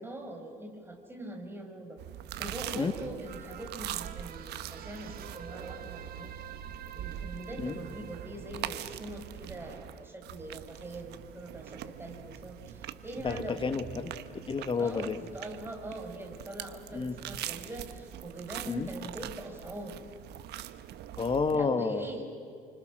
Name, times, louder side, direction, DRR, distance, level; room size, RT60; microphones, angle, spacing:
voice 1, 0.0-2.0 2.4-6.3 7.0-13.6 14.8-20.0 21.5-22.2, right 1 dB, 15° right, 2 dB, 5.5 m, -42 dB
sound 1, 2.0-21.5, right 11 dB, 75° right, 1.3 m, -43 dB
sound 2, 3.2-9.9 10.3-10.4, right 8 dB, 60° right, 2.3 m, -48 dB
voice 2, 13.2-14.1 14.5-15.2 16.9-17.1 18.7-18.9 21.2-22.1, left 4 dB, 30° left, 9 dB, 2.0 m, -30 dB
30.0 x 25.5 x 6.5 m, 2.3 s
cardioid pair, 110°, 17 cm